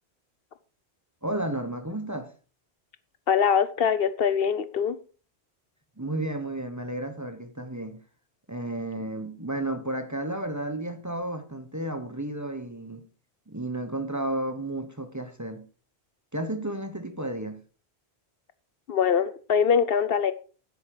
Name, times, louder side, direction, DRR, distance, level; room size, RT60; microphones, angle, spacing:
voice 1, 1.2-2.3 6.0-8.0 8.5-13.1 13.5-15.7 16.3-17.6, right 1 dB, 15° right, 1.0 m, -32 dB
voice 2, 3.3-5.0 18.9-20.3, left 7 dB, 65° left, 0.9 m, -23 dB
9.6 x 9.0 x 4.8 m
omnidirectional pair, 1.1 m